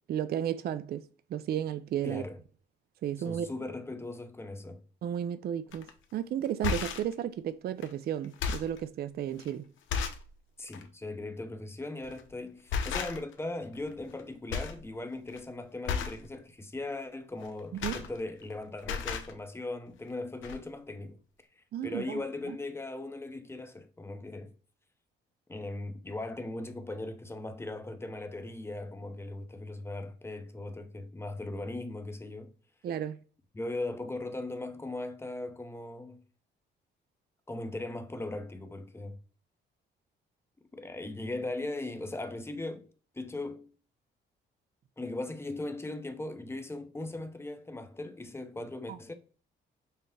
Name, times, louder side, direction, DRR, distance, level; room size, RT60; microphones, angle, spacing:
voice 1, 0.1-2.2 3.0-3.5 5.0-9.7 17.7-18.0 21.7-22.6 32.8-33.2 48.9-49.0, right 10 dB, 50° right, 0.4 m, -33 dB
voice 2, 2.0-2.4 3.2-4.8 10.6-21.2 21.6-24.5 25.5-32.5 33.5-36.2 37.5-39.2 40.7-42.9 43.1-43.7 45.0-49.1, left 2 dB, 10° left, 0.6 m, -39 dB
sound 1, 5.7-5.9 6.5-7.1 7.8-7.9 8.2-8.8 9.4-9.5 9.9-10.3 10.7-10.9 12.0-12.3 12.7-13.4 13.7-14.2 14.5-14.8 15.1-15.4 15.8-16.2 17.4-18.5 18.8-19.3 20.1-20.2 20.4-20.6, left 6 dB, 80° left, 0.6 m, -34 dB
5.4 x 2.1 x 3.3 m
cardioid pair, 90°, 20 cm